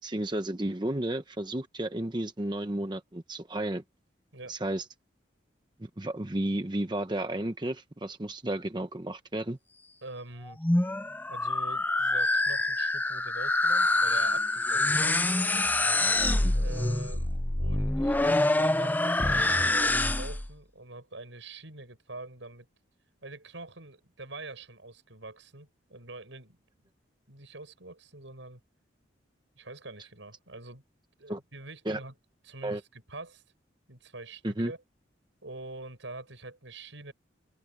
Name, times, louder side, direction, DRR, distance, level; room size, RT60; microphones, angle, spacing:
voice 1, 0.0-3.8 4.5-4.8 5.8-9.6 16.4-16.5 31.3-31.4 31.9-32.0 32.6-32.8 34.4-34.7, right 1 dB, 25° right, 0.9 m, -32 dB
voice 2, 10.0-10.6 11.3-15.2 16.5-22.7 23.2-26.6 26.8-26.9 27.3-28.6 29.6-30.8 31.2-32.1 32.4-33.4 33.9-34.8 35.4-37.1, right 2 dB, 80° right, 6.5 m, -45 dB
sound 1, 10.5-20.5, left 2 dB, 10° left, 0.4 m, -26 dB
head